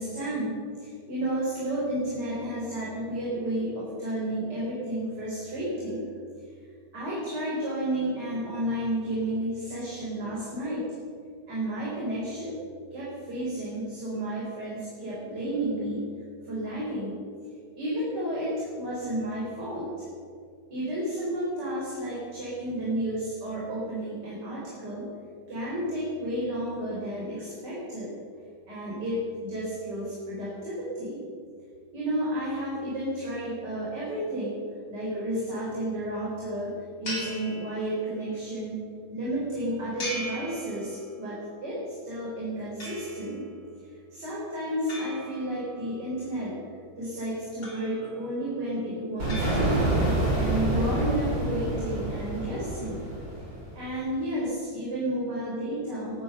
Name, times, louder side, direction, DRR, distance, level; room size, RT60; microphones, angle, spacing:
voice 1, 0.0-6.1 6.9-10.9 11.5-12.5 12.9-16.0 16.4-17.2 17.8-19.9 20.7-25.1 25.5-28.1 28.7-31.2 31.9-34.6 34.9-38.8 39.1-43.4 43.9-46.6 47.0-49.9 50.4-53.0 53.8-56.2, right 1 dB, 60° right, -6 dB, 4.6 m, -32 dB
sound 1, 37.0-38.3 40.0-41.3 42.8-43.5 44.9-46.0 47.6-48.3 49.3-50.2, equal, 70° left, 5.1 m, -39 dB
sound 2, 49.2-53.9, right 1 dB, 90° right, 5.8 m, -27 dB
20.5 x 9.4 x 6.7 m, 2.3 s
omnidirectional pair, 2.1 m